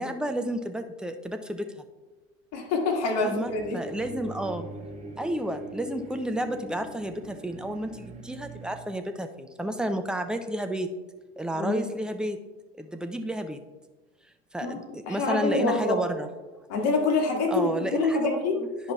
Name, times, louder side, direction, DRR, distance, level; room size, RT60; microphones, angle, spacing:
voice 1, 0.0-1.8 3.2-4.8 5.2-10.9 11.4-12.4 12.8-13.6 14.5-16.3 17.5-18.7, right 1 dB, 5° right, 7 dB, 0.3 m, -31 dB
voice 2, 2.5-3.8 11.5-11.8 14.6-16.0 16.7-18.6 18.8-18.9, left 3 dB, 45° left, 1 dB, 1.8 m, -26 dB
sound 1, 3.5-8.8, right 2 dB, 20° right, 1.1 m, -42 dB
10.5 x 5.4 x 2.3 m, 1.2 s
figure-of-eight pair, 75°, 34 cm